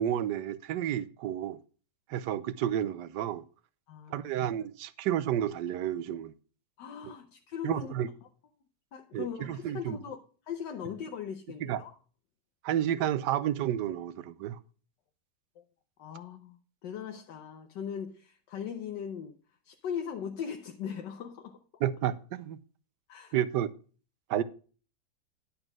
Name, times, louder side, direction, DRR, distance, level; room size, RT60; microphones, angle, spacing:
voice 1, 0.0-1.6 2.1-3.4 4.1-6.3 7.1-7.2 7.6-8.1 9.1-10.0 11.6-11.8 12.6-14.6 21.8-22.6 23.3-23.7 24.3-24.4, right 11 dB, 75° right, 1.3 m, -31 dB
voice 2, 3.9-4.3 6.8-7.9 8.9-10.2 10.5-11.9 15.6-15.7 16.0-16.6 16.8-19.4 19.6-21.6 23.1-23.3, left 7 dB, 85° left, 1.6 m, -39 dB
11.0 x 5.2 x 6.0 m
omnidirectional pair, 1.9 m